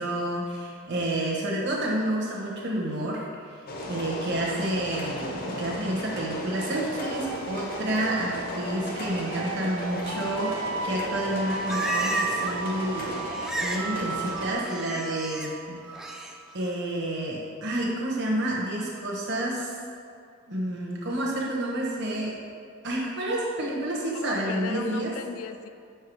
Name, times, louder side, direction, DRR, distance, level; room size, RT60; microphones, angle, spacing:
voice 1, 0.0-13.3 13.6-15.8 16.5-19.8 20.5-22.4 22.8-25.1, right 1 dB, 55° right, -3 dB, 1.0 m, -29 dB
sound 1, 3.7-14.5, left 1 dB, 40° left, 0.7 m, -35 dB
sound 2, 6.9-16.6, right 5 dB, 80° right, 0.4 m, -35 dB
Livestock farm animals working animals, 11.2-12.6 12.8-13.9 14.2-15.5 15.9-16.3, equal, ahead, 0.3 m, -33 dB
voice 2, 24.1-25.7, left 5 dB, 75° left, 9 dB, 0.4 m, -36 dB
5.7 x 4.6 x 4.7 m, 2.3 s
head